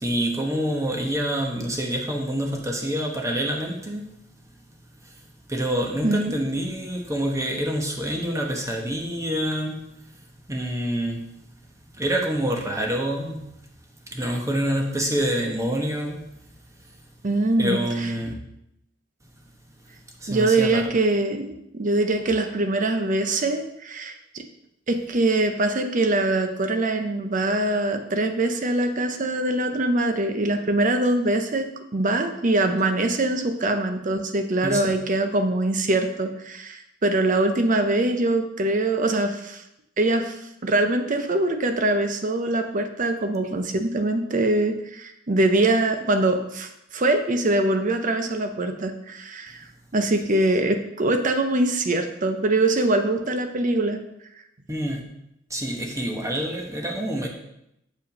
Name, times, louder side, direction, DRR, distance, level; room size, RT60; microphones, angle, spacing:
voice 1, 0.0-4.1 5.5-9.9 10.5-11.2 12.0-13.4 14.1-16.2 17.6-18.3 20.2-20.8 34.6-34.9 54.7-55.0 55.5-57.3, equal, 15° right, 1 dB, 1.0 m, -26 dB
voice 2, 17.2-18.1 20.3-24.4 24.9-31.7 31.9-39.6 40.0-49.7 49.9-54.0, right 2 dB, 40° right, 7 dB, 0.7 m, -23 dB
7.1 x 5.2 x 5.3 m, 0.81 s
head